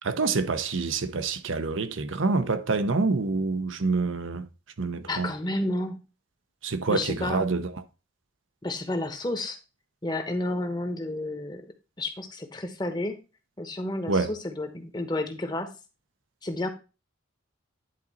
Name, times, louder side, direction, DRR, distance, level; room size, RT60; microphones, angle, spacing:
voice 1, 0.0-4.5 4.8-5.3 6.6-7.7 14.1-14.3, right 3 dB, 80° right, 0.8 m, -27 dB
voice 2, 5.0-6.0 6.9-7.5 8.6-9.6 10.0-11.6 12.0-13.1 13.6-15.7 16.4-16.7, left 1 dB, 20° left, 1.0 m, -31 dB
10.5 x 4.1 x 4.1 m
head